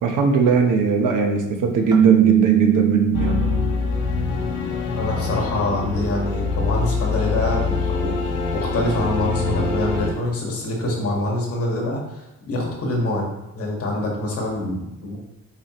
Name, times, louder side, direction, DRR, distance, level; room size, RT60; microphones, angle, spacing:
voice 1, 0.0-3.4, right 4 dB, 90° right, 3 dB, 1.2 m, -20 dB
Keyboard (musical), 1.9-3.9, right 12 dB, 15° right, 0.6 m, -19 dB
sound 1, 3.1-10.1, left 4 dB, 75° left, 1.3 m, -24 dB
voice 2, 4.9-13.3 13.5-15.2, left 1 dB, 50° left, -1 dB, 2.0 m, -25 dB
8.6 x 4.9 x 3.2 m, 0.97 s
cardioid pair, 165°, 31 cm